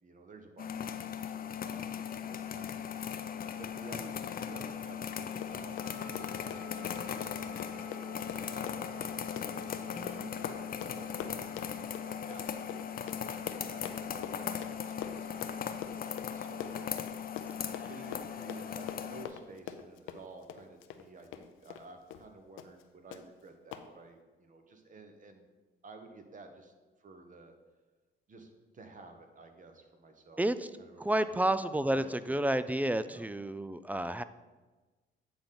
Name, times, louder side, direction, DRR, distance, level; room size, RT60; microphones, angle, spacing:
voice 1, 0.0-3.2 3.6-10.5 10.9-13.0 13.4-15.8 16.3-16.8 17.5-25.5 25.8-26.7 27.0-27.5 28.3-30.4 30.8-31.3 31.9-32.4 33.1-33.3, right 3 dB, 40° right, 5 dB, 1.2 m, -53 dB
sound 1, 0.6-19.3, left 8 dB, 45° left, 0.6 m, -38 dB
Run, 5.2-21.9 22.1-22.3 22.6-22.8 23.1-23.2 23.7-23.8, left 9 dB, 90° left, 0.6 m, -44 dB
sound 2, 5.8-16.8, right 2 dB, 65° right, 1.4 m, -55 dB
voice 2, 9.9-10.3 30.4-30.7 31.0-34.2, right 1 dB, 10° right, 13 dB, 0.3 m, -31 dB
8.6 x 3.8 x 5.9 m, 1.3 s
cardioid pair, 90°, 20 cm